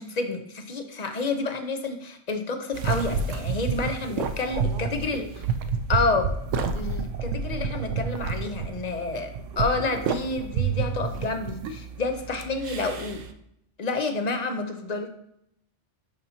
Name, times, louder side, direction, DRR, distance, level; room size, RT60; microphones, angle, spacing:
voice 1, 0.0-5.4 5.9-6.3 6.7-13.2 13.8-15.1, left 3 dB, 45° left, 7 dB, 0.6 m, -29 dB
sound 1, 2.7-13.3, right 5 dB, 80° right, 0.9 m, -30 dB
voice 2, 4.5-5.2, right 4 dB, 50° right, 5 dB, 0.8 m, -44 dB
11.0 x 4.2 x 2.7 m, 0.76 s
omnidirectional pair, 1.3 m